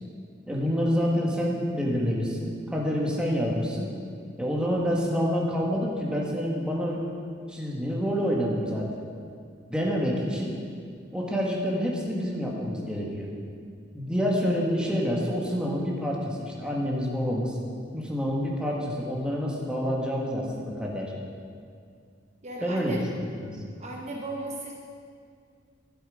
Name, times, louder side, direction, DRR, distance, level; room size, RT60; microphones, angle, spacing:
voice 1, 0.5-3.9 4.4-7.0 7.5-9.1 9.7-10.6 11.1-13.3 13.9-17.5 17.9-21.1 22.6-23.0 23.4-23.5, equal, 5° right, -3 dB, 1.6 m, -27 dB
voice 2, 22.4-23.0 23.8-24.7, right 2 dB, 35° right, -1 dB, 0.8 m, -36 dB
12.5 x 7.7 x 5.1 m, 2.3 s
head